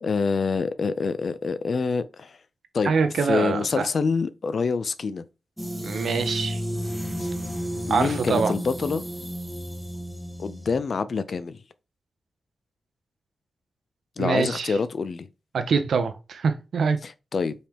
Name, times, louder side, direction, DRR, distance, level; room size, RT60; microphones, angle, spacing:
voice 1, 0.0-2.3 2.7-2.9 3.2-5.2 7.2-7.3 7.9-9.0 10.4-11.6 14.2-15.3 17.0-17.5, left 5 dB, 50° left, 0.4 m, -26 dB
voice 2, 2.8-3.9 5.8-6.6 7.9-8.5 14.2-14.8 15.5-17.0, right 5 dB, 80° right, 0.7 m, -24 dB
sound 1, 5.6-10.8, equal, ahead, 0.8 m, -32 dB
5.3 x 3.4 x 2.9 m
wide cardioid pair, 180°, 0 cm